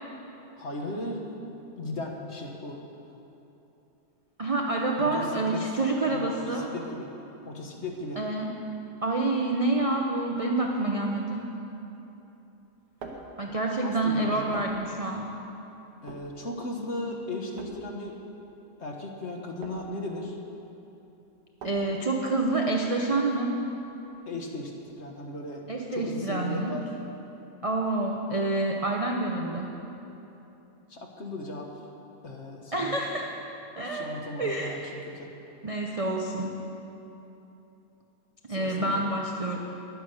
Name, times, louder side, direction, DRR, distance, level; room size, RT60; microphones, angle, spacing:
voice 1, 0.6-1.3 1.8-2.8 5.0-5.7 6.1-7.1 7.4-8.2 13.8-14.6 16.0-18.2 18.8-20.4 24.3-25.7 25.9-26.9 30.9-31.7 32.2-33.0 33.8-35.3 38.5-39.0, left 2 dB, 45° left, 1 dB, 1.2 m, -36 dB
voice 2, 4.4-6.7 8.2-8.5 9.0-11.5 13.4-15.3 21.6-23.6 25.7-26.7 27.6-29.7 32.7-33.3 33.8-34.7 35.6-36.6 38.5-39.6, right 2 dB, 45° right, 0 dB, 0.4 m, -28 dB
sound 1, 12.6-24.1, right 3 dB, 90° right, 1.7 m, -48 dB
10.0 x 9.8 x 6.5 m, 3.0 s
omnidirectional pair, 1.8 m